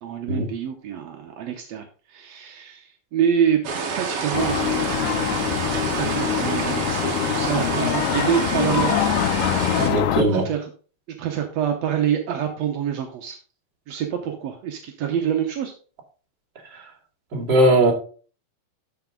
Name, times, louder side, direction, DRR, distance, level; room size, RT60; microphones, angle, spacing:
voice 1, 0.0-9.1 10.3-10.7 11.2-13.4 13.9-15.7, right 9 dB, 75° right, 4 dB, 1.5 m, -27 dB
sound 1, 3.6-9.9, right 5 dB, 60° right, 1.7 m, -28 dB
sound 2, 4.3-10.2, left 12 dB, 85° left, 1.8 m, -24 dB
Wind instrument woodwind instrument, 6.1-10.0, left 5 dB, 5° right, 2.0 m, -40 dB
voice 2, 9.8-10.5 16.7-16.8 17.3-17.9, right 1 dB, 35° right, -3 dB, 2.5 m, -19 dB
12.0 x 4.7 x 3.8 m, 0.39 s
omnidirectional pair, 4.3 m